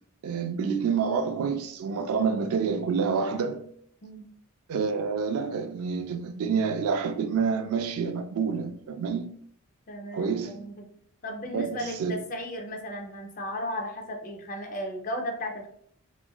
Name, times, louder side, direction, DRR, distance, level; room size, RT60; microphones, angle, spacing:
voice 1, 0.2-3.7 4.7-9.3 10.1-10.7 11.5-12.2, right 5 dB, 85° right, 0.3 m, -28 dB
voice 2, 9.9-10.8 11.2-15.7, left 1 dB, 40° left, 0.5 m, -35 dB
3.1 x 2.4 x 2.2 m
head